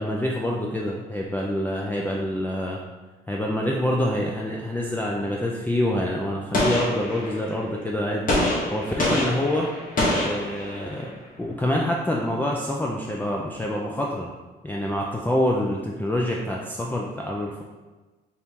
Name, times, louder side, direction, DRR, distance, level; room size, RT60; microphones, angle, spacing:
voice 1, 0.0-2.8 3.3-8.2 8.7-9.7 10.2-11.1 11.4-14.3 14.6-17.6, left 1 dB, 10° left, -2 dB, 0.4 m, -26 dB
Gunshot gunfire, 6.5-7.6 8.3-11.1, left 1 dB, 45° left, 1.2 m, -25 dB
4.4 x 2.7 x 3.5 m, 1.2 s
cardioid pair, 90°, 20 cm